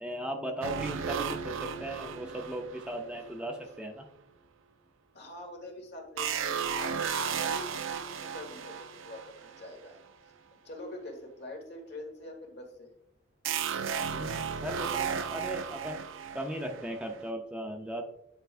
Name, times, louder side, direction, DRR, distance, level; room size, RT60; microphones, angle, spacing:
voice 1, 0.0-4.1 14.1-16.0 16.3-18.0, right 1 dB, 5° right, 2 dB, 0.5 m, -37 dB
sound 1, 0.6-3.5 6.2-9.7 13.5-17.2, right 7 dB, 85° right, 0.5 m, -34 dB
voice 2, 5.1-10.0 10.6-12.9, left 1 dB, 55° left, 3 dB, 1.5 m, -45 dB
9.1 x 4.6 x 2.5 m, 0.76 s
head